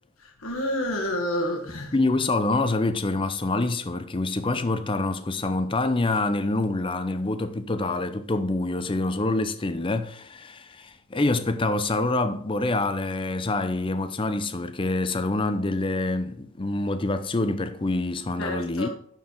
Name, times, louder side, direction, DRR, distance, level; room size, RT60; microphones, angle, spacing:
voice 1, 0.4-1.9 18.4-18.9, left 1 dB, 75° left, 1.4 m, -28 dB
voice 2, 1.7-18.9, left 2 dB, 25° left, 0.5 m, -26 dB
11.0 x 4.6 x 3.8 m
head